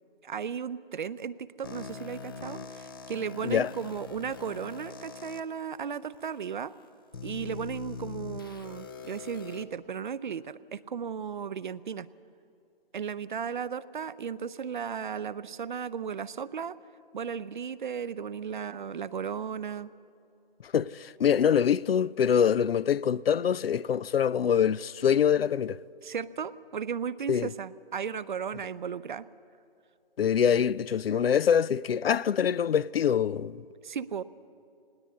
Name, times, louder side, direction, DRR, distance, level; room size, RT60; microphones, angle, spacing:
voice 1, 0.2-6.7 7.2-12.1 12.9-16.8 17.1-19.9 26.0-29.3 33.8-34.2, right 7 dB, 55° right, 0.6 m, -35 dB
sound 1, 1.6-5.4 6.1-6.2 7.1-9.6, left 5 dB, 25° left, 0.6 m, -42 dB
voice 2, 20.6-25.8 27.3-27.5 30.2-33.6, left 8 dB, 75° left, 0.5 m, -25 dB
20.5 x 17.5 x 8.4 m
hypercardioid pair, 155°, 30 cm